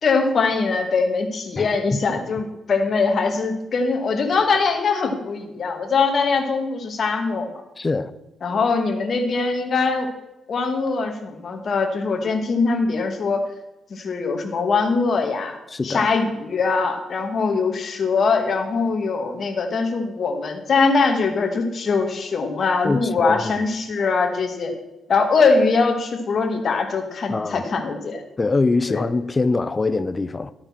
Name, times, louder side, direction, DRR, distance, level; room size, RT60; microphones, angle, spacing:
voice 1, 0.0-7.5 8.4-10.1 10.5-13.4 13.9-15.6 15.8-24.7 25.1-28.2 28.9-29.0, left 4 dB, 45° left, 2.2 m, -22 dB
voice 2, 1.6-2.0 7.8-8.1 15.7-16.1 22.8-23.5 27.3-27.6 28.4-30.5, left 3 dB, 20° left, 0.6 m, -23 dB
14.0 x 8.8 x 6.0 m
cardioid pair, 140°, 0 cm